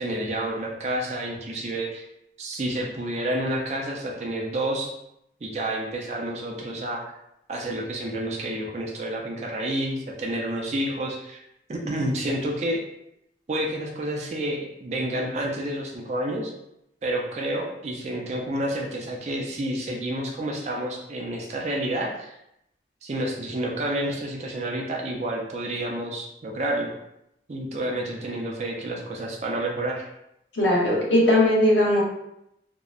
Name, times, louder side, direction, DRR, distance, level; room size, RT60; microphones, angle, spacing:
voice 1, 0.0-2.1 2.4-4.9 5.4-7.0 7.5-11.4 11.7-12.8 13.5-16.5 17.0-22.4 23.0-26.9 27.5-30.1, right 1 dB, 40° right, 0 dB, 0.4 m, -29 dB
voice 2, 30.5-32.0, left 1 dB, 85° left, -4 dB, 0.8 m, -19 dB
2.7 x 2.0 x 2.3 m, 0.81 s
head